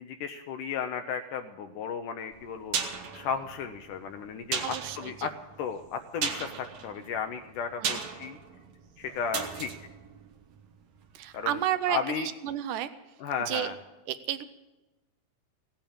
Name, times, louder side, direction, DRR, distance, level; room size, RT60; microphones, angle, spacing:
voice 1, 0.0-2.8 3.1-5.3 5.6-8.4 9.0-9.9 11.3-11.6 11.9-12.3 13.2-13.8, left 6 dB, 75° left, 7 dB, 2.0 m, -34 dB
sound 1, 2.3-11.2 11.5-11.6, right 6 dB, 60° right, 2.2 m, -37 dB
voice 2, 4.6-5.3 7.8-8.0 11.1-12.9 13.5-13.7 14.1-14.4, right 12 dB, 75° right, 12 dB, 2.0 m, -32 dB
17.0 x 8.9 x 8.7 m, 1.1 s
omnidirectional pair, 4.2 m